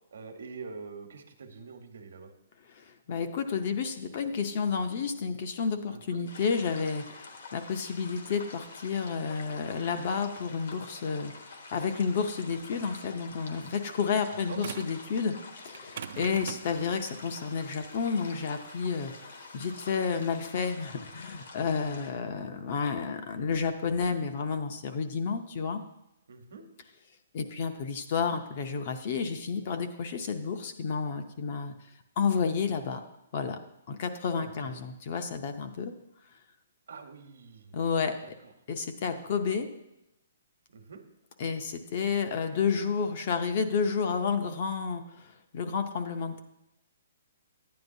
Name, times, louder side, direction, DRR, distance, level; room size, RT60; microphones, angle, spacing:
voice 1, 0.1-2.3 5.9-6.2 14.5-14.6 26.3-26.6 34.3-34.8 36.9-37.8 38.2-38.5 39.1-39.3 40.7-41.0, right 4 dB, 70° right, 5 dB, 1.0 m, -45 dB
voice 2, 2.8-11.4 11.7-15.3 15.6-25.8 27.3-31.7 32.2-33.0 33.3-33.6 33.9-35.9 37.7-38.2 38.7-39.7 41.4-46.4, left 5 dB, 30° left, 7 dB, 0.5 m, -31 dB
sound 1, 6.3-22.1, left 3 dB, 55° left, 1.1 m, -47 dB
sound 2, 14.6-15.0 15.7-20.7, right 8 dB, 40° right, 0.3 m, -43 dB
10.5 x 9.4 x 2.7 m, 0.87 s
hypercardioid pair, 180°, 0 cm